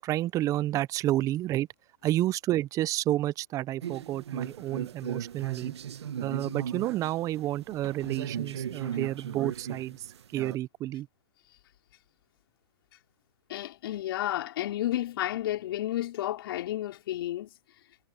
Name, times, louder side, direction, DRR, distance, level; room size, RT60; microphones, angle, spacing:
voice 1, 0.0-1.7 2.0-5.7 6.2-10.0 10.3-11.1, right 14 dB, 25° right, 0.5 m, -30 dB
sound 1, 3.8-10.6, right 8 dB, 75° right, 1.7 m, -37 dB
voice 2, 13.5-17.5, left 13 dB, 60° left, 4.5 m, -31 dB
hypercardioid pair, 130°, 14 cm